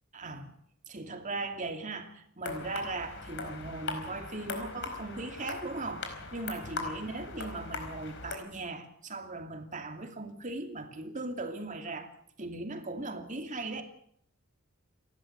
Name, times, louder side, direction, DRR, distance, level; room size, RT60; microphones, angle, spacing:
voice 1, 0.1-0.5 0.9-12.1 12.4-13.8, right 2 dB, 35° right, 2.7 m, -38 dB
sound 1, 2.4-8.4, left 3 dB, 55° left, 4.5 m, -40 dB
29.5 x 12.5 x 8.1 m
head